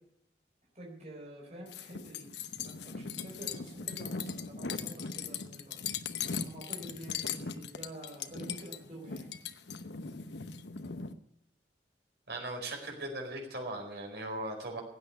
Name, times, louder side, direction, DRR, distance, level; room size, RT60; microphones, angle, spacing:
voice 1, 0.7-2.3 2.6-5.8 6.4-9.3, right 1 dB, 40° right, -2 dB, 4.1 m, -47 dB
sound 1, 1.7-11.1, left 6 dB, 85° left, 0.9 m, -39 dB
voice 2, 12.3-14.8, right 2 dB, 70° right, 1 dB, 4.7 m, -38 dB
16.0 x 8.9 x 8.3 m, 0.76 s
head